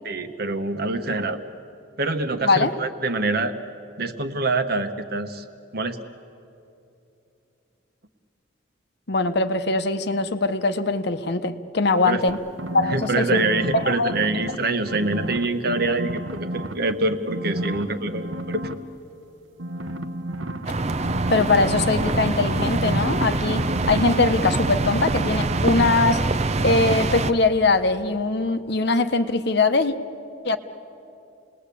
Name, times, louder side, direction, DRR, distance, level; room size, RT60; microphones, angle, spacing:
voice 1, 0.0-1.4 2.0-3.5 4.0-5.4 5.7-6.0 12.1-12.2 12.9-18.7, right 2 dB, 55° right, 8 dB, 1.2 m, -25 dB
voice 2, 9.1-12.4 12.7-13.4 13.7-14.1 21.3-26.2 26.6-29.9 30.4-30.6, left 3 dB, 60° left, 9 dB, 1.0 m, -21 dB
sound 1, 12.3-14.5 14.9-16.9 17.3-18.7 19.6-25.2 25.5-25.7, right 1 dB, 85° right, 1.2 m, -32 dB
sound 2, 20.6-27.3, right 2 dB, 35° right, 0.6 m, -24 dB
29.0 x 20.0 x 8.4 m, 2.8 s
head